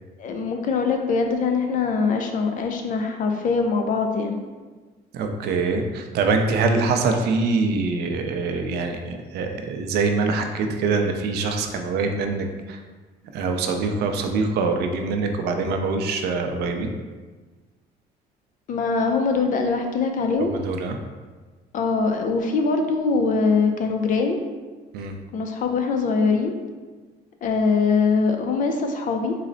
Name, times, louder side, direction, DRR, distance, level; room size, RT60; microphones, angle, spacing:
voice 1, 0.2-4.4 18.7-20.5 21.7-24.4 25.3-26.5 27.4-29.3, left 4 dB, 50° left, 4 dB, 0.5 m, -22 dB
voice 2, 5.1-12.8 13.3-16.9 20.4-21.0 24.9-25.2, right 4 dB, 75° right, 5 dB, 0.5 m, -24 dB
4.0 x 2.1 x 3.8 m, 1.4 s
cardioid pair, 110°, 17 cm